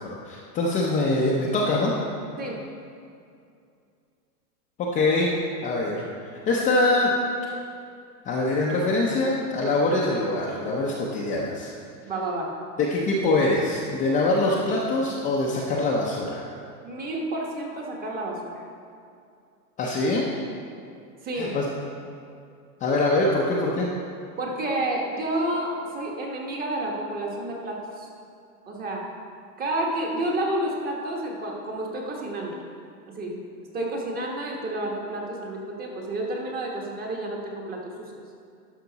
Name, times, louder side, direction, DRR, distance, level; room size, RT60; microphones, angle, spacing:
voice 1, 0.0-1.9 4.8-5.3 5.6-7.1 8.3-11.7 12.8-16.5 19.8-20.3 21.4-21.7 22.8-23.9, left 2 dB, 15° left, -4 dB, 0.6 m, -24 dB
voice 2, 12.0-12.5 16.8-18.6 21.2-21.6 24.4-28.1 28.7-29.0 29.6-32.6 33.1-33.4 33.7-38.2, right 1 dB, 20° right, 0 dB, 1.2 m, -30 dB
12.0 x 5.8 x 4.0 m, 2.4 s
hypercardioid pair, 140°, 47 cm